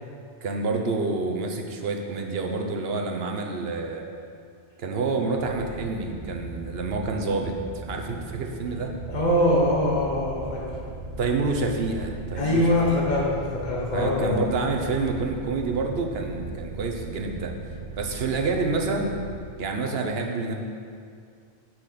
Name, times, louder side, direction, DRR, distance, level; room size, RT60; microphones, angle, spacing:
voice 1, 0.4-4.1 4.8-8.9 11.2-13.0 13.9-17.5 18.0-19.2 19.6-20.5, right 3 dB, 70° right, 3 dB, 1.1 m, -28 dB
sound 1, 5.4-19.4, right 3 dB, 45° right, 0.7 m, -38 dB
voice 2, 9.1-10.6 12.3-14.3, left 1 dB, 45° left, -5 dB, 1.3 m, -23 dB
6.1 x 6.1 x 6.7 m, 2.3 s
omnidirectional pair, 1.1 m